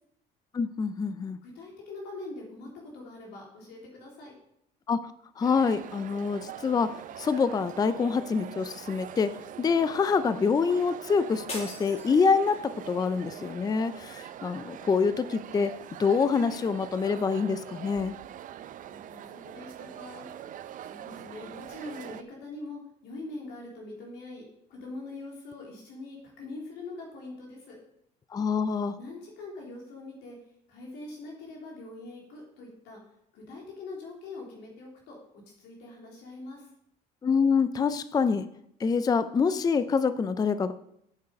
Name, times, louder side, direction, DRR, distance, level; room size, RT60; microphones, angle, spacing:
voice 1, 0.5-1.4 4.9-5.0 5.4-9.3 9.6-15.7 16.0-18.1 28.3-28.9 37.2-38.5 38.8-40.7, left 5 dB, 25° left, 13 dB, 0.4 m, -26 dB
voice 2, 1.4-4.3 18.9-20.3 20.8-27.8 28.9-30.4 30.7-33.0 33.3-35.2 35.6-36.7, left 2 dB, 90° left, -1 dB, 3.3 m, -43 dB
sound 1, 5.4-22.2, right 10 dB, 50° right, 0.5 m, -43 dB
sound 2, 11.5-12.7, left 2 dB, 40° left, 4.6 m, -41 dB
8.1 x 8.0 x 5.2 m, 0.75 s
cardioid pair, 110°, 17 cm